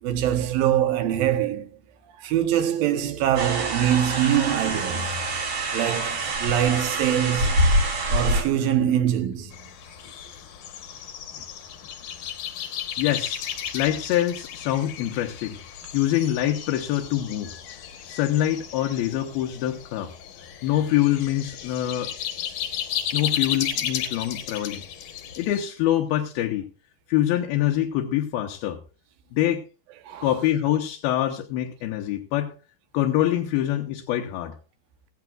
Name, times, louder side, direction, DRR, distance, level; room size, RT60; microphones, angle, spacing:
voice 1, 0.0-1.8 2.2-5.2 5.7-7.6 8.1-9.6 30.0-30.3, right 10 dB, 75° right, 2.8 m, -24 dB
sound 1, 3.4-8.4, right 1 dB, 55° right, 4.8 m, -25 dB
sound 2, 9.5-25.6, left 9 dB, 65° left, 2.4 m, -34 dB
voice 2, 13.0-13.4 13.7-15.6 15.9-17.5 18.0-20.1 20.6-22.1 23.1-24.8 25.4-26.7 27.1-28.8 29.3-29.6 30.2-32.5 32.9-34.6, left 12 dB, 80° left, 2.8 m, -25 dB
17.0 x 16.0 x 2.4 m
omnidirectional pair, 4.3 m